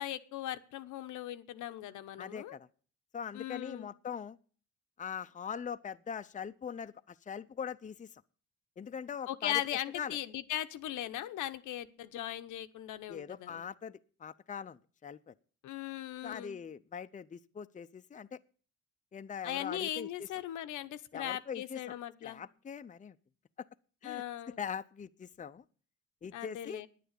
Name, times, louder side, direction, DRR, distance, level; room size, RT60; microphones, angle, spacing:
voice 1, 0.0-2.6 3.3-3.9 9.3-13.6 15.6-16.6 19.4-22.4 24.0-24.6 26.3-26.9, left 12 dB, 85° left, 10 dB, 1.0 m, -39 dB
voice 2, 2.2-2.7 3.1-4.4 5.0-8.1 8.8-9.6 9.9-10.2 13.1-15.3 16.2-18.4 19.1-20.3 21.1-22.0 22.2-23.2 23.6-23.7 24.0-25.6 26.2-26.8, left 7 dB, 25° left, 11 dB, 0.6 m, -42 dB
10.0 x 9.2 x 8.2 m, 0.43 s
cardioid pair, 90°, 30 cm